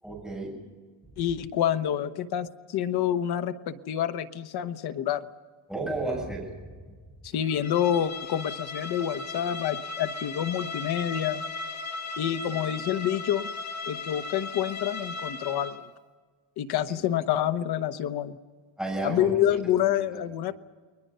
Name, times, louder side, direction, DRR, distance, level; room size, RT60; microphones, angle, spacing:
voice 1, 0.0-0.5 1.1-1.2 5.7-6.5 16.9-17.0 18.8-19.6 19.9-20.2, right 2 dB, ahead, -3 dB, 7.0 m, -33 dB
voice 2, 1.2-5.3 7.2-11.4 12.2-13.5 13.9-15.8 16.6-18.4 19.0-20.5, left 10 dB, 50° left, 9 dB, 1.1 m, -27 dB
Bowed string instrument, 7.5-15.9, left 4 dB, 35° left, 1.9 m, -37 dB
29.5 x 21.5 x 5.5 m, 1.5 s
cardioid pair, 175°, 48 cm